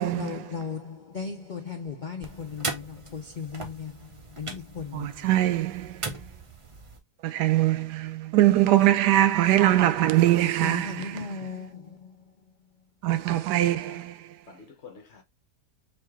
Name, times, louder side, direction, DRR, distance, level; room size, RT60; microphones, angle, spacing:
voice 1, 0.0-5.3 10.6-12.7, left 5 dB, 80° left, 0.4 m, -37 dB
sound 1, 2.2-7.0, right 3 dB, 55° right, 0.3 m, -39 dB
voice 2, 4.9-6.0 7.2-10.9 13.0-14.1, right 14 dB, 85° right, 1.2 m, -22 dB
voice 3, 13.3-14.1 14.5-15.2, left 4 dB, 55° left, 0.9 m, -48 dB
4.7 x 2.8 x 3.5 m
omnidirectional pair, 1.7 m